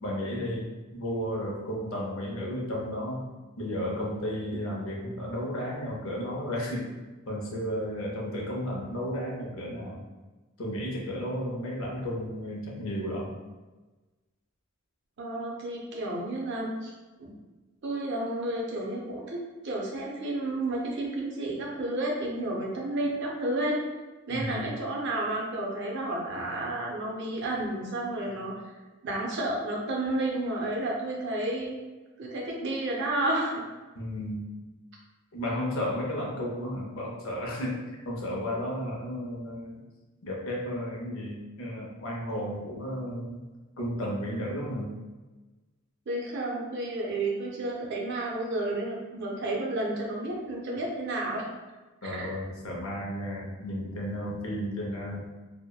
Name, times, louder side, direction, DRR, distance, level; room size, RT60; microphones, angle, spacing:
voice 1, 0.0-6.9 7.3-10.0 10.6-13.3 24.3-24.7 33.9-34.5 35.3-37.8 38.1-39.8 40.2-43.5 43.8-44.9 52.0-55.3, equal, 65° left, -2 dB, 0.6 m, -33 dB
voice 2, 15.2-16.9 17.2-17.3 17.8-23.8 24.3-28.6 29.0-31.8 32.2-33.6 46.1-51.5 52.0-52.3, right 1 dB, 55° right, -2 dB, 0.5 m, -31 dB
2.7 x 2.1 x 2.2 m, 1.2 s
head